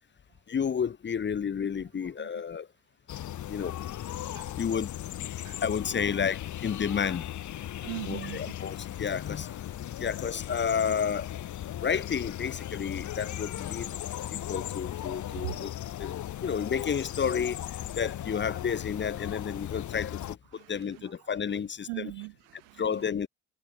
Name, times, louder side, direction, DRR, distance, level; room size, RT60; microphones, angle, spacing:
voice 1, 0.5-2.7 3.5-3.8 4.6-4.9 5.6-7.3 8.1-11.3 11.8-13.9 14.3-15.7 16.0-17.6 18.0-21.9 22.8-23.3, left 7 dB, 30° left, 0.8 m, -31 dB
voice 2, 1.9-2.3 4.2-4.6 5.4-5.6 5.9-6.3 7.6-8.9 9.2-9.3 13.5-14.0 14.5-14.6 15.3-15.7 19.6-19.7 20.5-23.2, right 30 dB, 80° right, 1.2 m, -43 dB
sound 1, 3.1-20.4, left 12 dB, 55° left, 1.3 m, -37 dB
hypercardioid pair, 50°, 36 cm